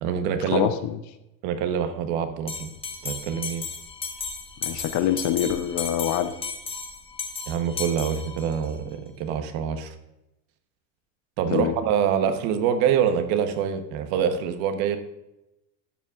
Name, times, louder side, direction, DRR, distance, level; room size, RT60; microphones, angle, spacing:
voice 1, 0.0-0.7 1.4-2.7 3.0-3.6 7.5-9.9 11.4-15.0, right 8 dB, 65° right, 7 dB, 1.1 m, -25 dB
voice 2, 0.5-1.0 4.6-6.4 11.5-11.7, left 10 dB, 45° left, 12 dB, 0.5 m, -25 dB
Bell, 2.5-8.7, left 5 dB, 15° left, 0.9 m, -35 dB
12.5 x 7.2 x 2.4 m, 0.92 s
cardioid pair, 145°, 44 cm